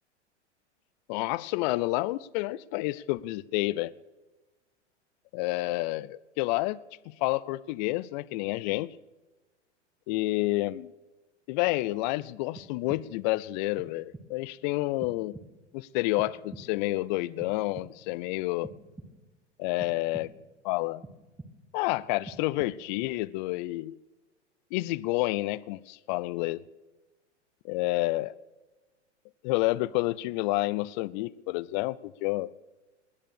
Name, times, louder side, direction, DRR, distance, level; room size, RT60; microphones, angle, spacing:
voice 1, 1.1-3.9 5.3-6.8 7.1-8.9 10.1-10.9 11.5-15.4 15.7-18.7 19.6-20.3 20.6-21.0 21.7-24.0 24.7-26.6 27.6-28.3 29.4-32.5, left 19 dB, 40° left, 0.5 m, -29 dB
sound 1, 12.6-13.3 13.8-14.5 15.0-15.8 16.2-17.0 17.4-18.2 18.6-19.4 19.8-20.6 21.0-21.8 22.2-23.1, right 2 dB, 5° right, 1.2 m, -48 dB
19.5 x 10.0 x 6.6 m
hypercardioid pair, 100°, 36 cm